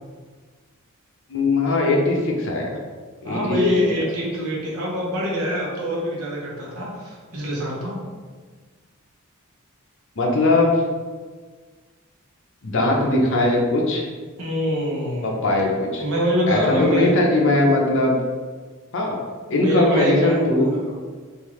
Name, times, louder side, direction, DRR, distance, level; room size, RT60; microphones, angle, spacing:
voice 1, 1.3-2.7 3.2-3.6 3.9-4.0 10.2-10.8 12.6-14.1 15.2-16.0 16.5-18.1 18.9-19.2 19.5-20.7, left 2 dB, 60° left, -1 dB, 0.7 m, -20 dB
voice 2, 3.2-8.0 14.4-15.4 16.0-17.1 17.6-17.7 19.5-20.4 20.9-21.0, equal, 75° right, -5 dB, 1.1 m, -24 dB
3.7 x 2.6 x 3.1 m, 1.5 s
head